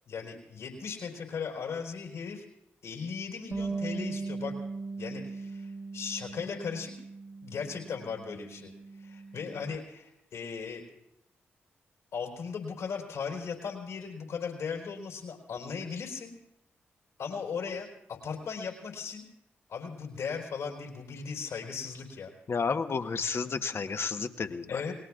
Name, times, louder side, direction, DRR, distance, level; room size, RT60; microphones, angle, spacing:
voice 1, 0.1-2.4 2.8-4.5 5.0-6.9 7.4-8.7 9.0-10.8 12.1-16.3 17.2-19.3 19.7-22.3 24.7-24.9, left 6 dB, 80° left, 1 dB, 4.1 m, -37 dB
Bass guitar, 3.5-9.8, right 3 dB, 35° right, 1.9 m, -39 dB
voice 2, 22.5-24.8, left 5 dB, 55° left, 8 dB, 1.1 m, -31 dB
29.5 x 19.5 x 2.5 m, 0.86 s
supercardioid pair, 40°, 5 cm